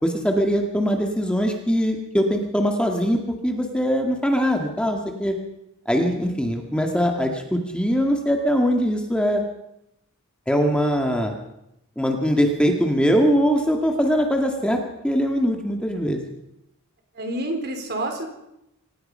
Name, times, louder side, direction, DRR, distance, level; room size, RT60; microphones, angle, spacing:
voice 1, 0.0-5.4 5.9-9.4 10.5-11.3 12.0-16.2, equal, 5° left, 2 dB, 2.0 m, -22 dB
voice 2, 17.1-18.3, right 1 dB, 50° right, 4 dB, 4.1 m, -28 dB
26.0 x 18.0 x 5.6 m, 0.85 s
head